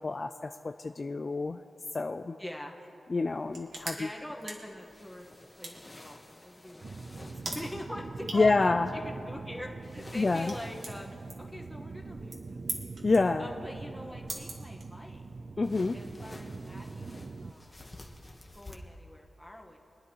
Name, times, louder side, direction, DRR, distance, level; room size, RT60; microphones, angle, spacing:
voice 1, 0.0-1.6 1.9-2.4 3.1-4.1 8.3-8.9 10.1-10.5 13.0-13.5 15.6-16.0, left 3 dB, 40° left, 7 dB, 0.3 m, -27 dB
voice 2, 2.4-2.8 4.0-5.3 5.6-11.1 11.4-12.7 13.4-15.3 15.9-17.8 18.5-19.8, left 1 dB, 5° left, 0 dB, 1.3 m, -44 dB
sound 1, 3.3-15.4, right 2 dB, 65° right, 1.9 m, -45 dB
sound 2, 4.8-7.9 9.8-11.3 15.6-18.8, left 2 dB, 25° left, 1.3 m, -50 dB
sound 3, 6.8-17.5, right 3 dB, 45° right, 0.5 m, -43 dB
23.5 x 10.0 x 3.0 m, 2.8 s
wide cardioid pair, 85°, 0 cm